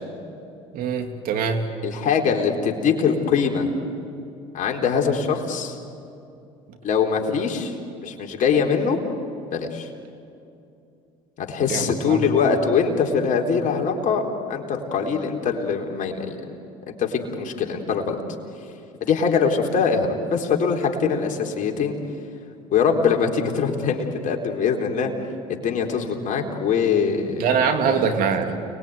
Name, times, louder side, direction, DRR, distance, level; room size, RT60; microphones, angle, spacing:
voice 1, 0.7-1.7 11.7-12.3 27.4-28.6, right 6 dB, 60° right, 5 dB, 2.9 m, -23 dB
voice 2, 1.8-3.7 4.5-5.8 6.8-7.8 8.0-9.0 9.5-9.9 11.4-14.2 14.5-16.4 16.9-18.2 19.0-22.0 22.7-25.1 25.5-28.1, left 6 dB, 50° left, 2 dB, 4.0 m, -23 dB
29.5 x 21.5 x 9.5 m, 2.7 s
hypercardioid pair, 70°, 17 cm